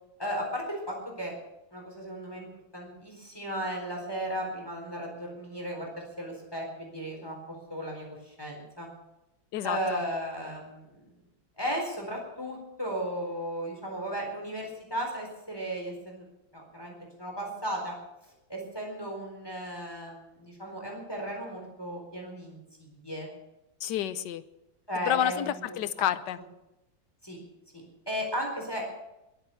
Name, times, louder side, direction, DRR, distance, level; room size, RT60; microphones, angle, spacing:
voice 1, 0.2-1.3 1.7-2.5 2.7-8.9 9.6-11.0 11.6-16.2 16.5-17.9 18.5-23.3 24.9-25.6 26.0-26.1 27.2-27.4 27.7-28.8, equal, 10° left, 0 dB, 4.1 m, -35 dB
voice 2, 9.5-10.0 23.8-24.4 25.1-26.4, left 11 dB, 70° left, 14 dB, 1.4 m, -29 dB
21.5 x 8.0 x 7.1 m, 0.91 s
omnidirectional pair, 2.0 m